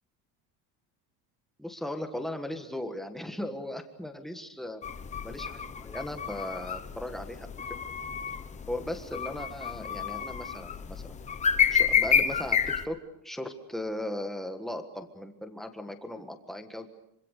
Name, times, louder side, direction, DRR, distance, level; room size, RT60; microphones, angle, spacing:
voice 1, 1.6-4.8 5.2-7.5 8.7-11.2 11.7-13.0 13.2-16.9, left 1 dB, ahead, 6 dB, 1.6 m, -37 dB
sound 1, 4.8-12.9, left 7 dB, 15° left, 0.9 m, -29 dB
26.0 x 25.0 x 6.7 m, 0.79 s
cardioid pair, 175°, 42 cm